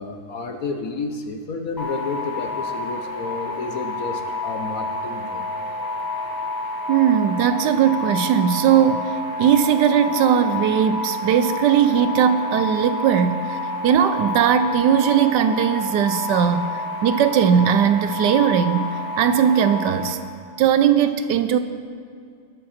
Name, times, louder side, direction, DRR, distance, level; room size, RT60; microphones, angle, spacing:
voice 1, 0.0-5.5, left 3 dB, 60° left, 5 dB, 1.1 m, -31 dB
sound 1, 1.8-20.1, left 2 dB, 15° left, 1.3 m, -29 dB
voice 2, 6.9-9.0 9.4-16.6 17.0-18.9 19.2-20.2 20.6-21.6, right 9 dB, 75° right, 10 dB, 1.1 m, -18 dB
20.5 x 7.7 x 4.3 m, 2.2 s
omnidirectional pair, 2.0 m